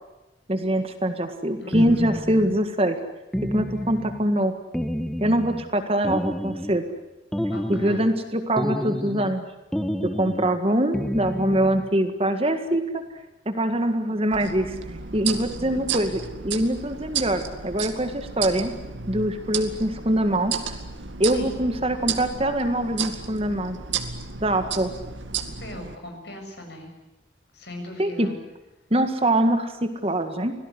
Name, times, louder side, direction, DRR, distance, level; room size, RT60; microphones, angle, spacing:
voice 1, 0.5-3.0 3.4-4.5 5.2-6.8 7.7-9.4 10.2-13.0 13.5-14.8 15.1-18.7 19.1-20.5 21.2-23.8 24.4-24.9 28.0-28.3 28.9-30.5, right 1 dB, 30° right, 7 dB, 1.9 m, -23 dB
voice 2, 1.6-2.2 7.5-8.0 21.3-21.6 25.4-26.9 27.5-28.4, left 1 dB, 60° left, 3 dB, 7.0 m, -39 dB
sound 1, 1.7-2.6 3.3-4.3 4.7-5.7 6.0-6.9 7.3-8.1 8.6-9.4 9.7-10.6 10.9-11.9, equal, 5° left, 1.3 m, -29 dB
sound 2, 14.3-25.9, right 6 dB, 75° right, 2.2 m, -33 dB
25.5 x 17.5 x 9.8 m, 1.0 s
head